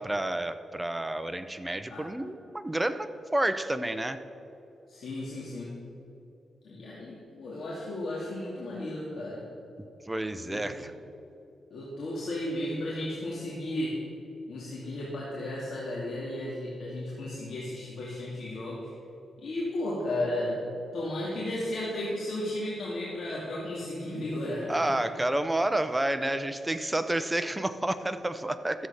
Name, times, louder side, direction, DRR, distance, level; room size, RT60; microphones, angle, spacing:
voice 1, 0.0-4.2 10.1-10.9 24.7-28.9, right 1 dB, 10° right, 11 dB, 0.7 m, -30 dB
voice 2, 4.9-5.7 6.6-9.4 10.4-10.9 11.7-14.0 14.5-18.9 19.4-20.6 20.9-24.9, left 1 dB, 65° left, -6 dB, 2.3 m, -34 dB
13.0 x 7.8 x 5.8 m, 2.9 s
cardioid pair, 100°, 0 cm